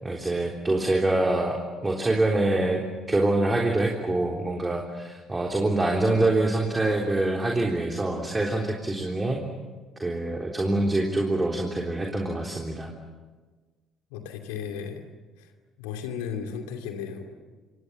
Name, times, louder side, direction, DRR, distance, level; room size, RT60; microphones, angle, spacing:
voice 1, 0.0-9.4 10.0-12.9, right 2 dB, 15° right, 1 dB, 3.6 m, -25 dB
voice 2, 14.1-15.0 15.4-15.5 15.8-17.3, left 7 dB, 65° left, 5 dB, 2.6 m, -35 dB
29.0 x 27.0 x 7.3 m, 1.3 s
figure-of-eight pair, 50°, 0 cm